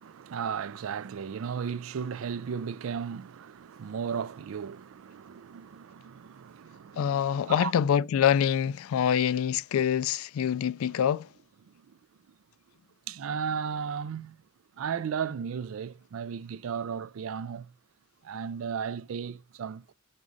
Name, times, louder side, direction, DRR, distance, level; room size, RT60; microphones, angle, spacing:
voice 1, 0.0-7.7 11.6-12.0 12.3-12.4 13.1-14.4 14.8-17.7 18.2-19.9, right 7 dB, 70° right, 0.4 m, -35 dB
voice 2, 7.0-11.3, left 8 dB, 75° left, 0.3 m, -25 dB
6.2 x 3.6 x 5.2 m
head